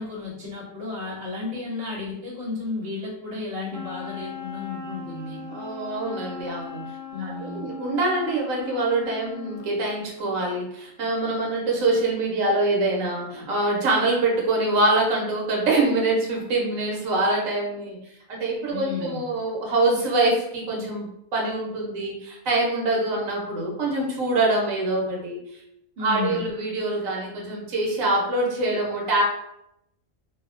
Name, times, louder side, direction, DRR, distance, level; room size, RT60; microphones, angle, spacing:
voice 1, 0.0-5.4 7.1-7.7 18.7-19.2 26.0-26.5, left 4 dB, 60° right, -6 dB, 1.0 m, -33 dB
Wind instrument woodwind instrument, 3.7-9.8, left 3 dB, 25° right, 0.4 m, -38 dB
voice 2, 5.5-6.8 7.2-18.0 18.3-25.4 26.0-29.2, right 2 dB, 85° right, -1 dB, 1.1 m, -24 dB
2.7 x 2.0 x 2.4 m, 0.79 s
omnidirectional pair, 1.4 m